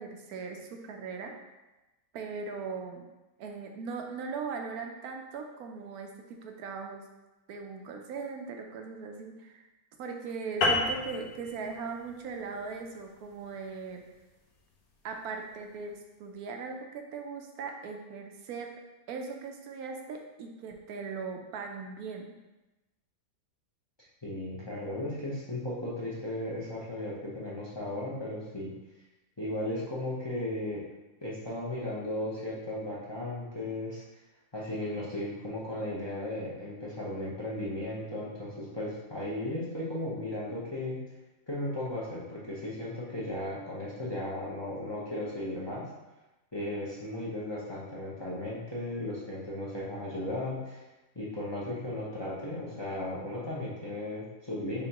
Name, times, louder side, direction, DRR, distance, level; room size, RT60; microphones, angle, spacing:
voice 1, 0.0-1.3 2.1-3.1 3.4-7.0 7.5-9.7 10.0-14.0 15.0-18.7 19.1-22.3, right 4 dB, 85° right, 3 dB, 1.1 m, -39 dB
sound 1, 10.6-15.3, left 2 dB, 85° left, 1.2 m, -33 dB
voice 2, 24.2-28.7 29.4-30.8 31.2-34.0 34.5-41.0 41.5-45.8 46.5-50.8 51.1-54.9, left 1 dB, 25° left, -7 dB, 0.7 m, -36 dB
5.2 x 3.3 x 2.9 m, 1.1 s
omnidirectional pair, 1.5 m